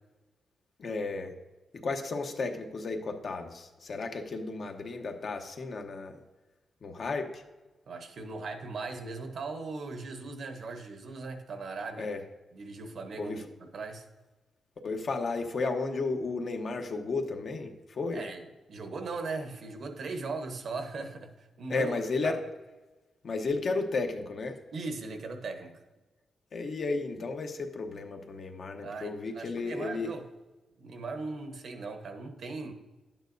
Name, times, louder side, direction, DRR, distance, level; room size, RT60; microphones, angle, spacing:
voice 1, 0.8-1.3 1.8-6.1 6.8-7.4 12.0-12.2 13.2-13.4 14.8-18.2 21.7-22.4 23.2-24.6 26.5-30.1, left 3 dB, 50° left, 4 dB, 0.9 m, -33 dB
voice 2, 7.9-12.1 12.5-13.4 13.7-14.0 18.1-22.4 24.7-25.7 28.8-30.2 30.8-32.7, right 3 dB, 55° right, 6 dB, 1.0 m, -39 dB
11.5 x 8.8 x 2.6 m, 1.1 s
wide cardioid pair, 135°, 0 cm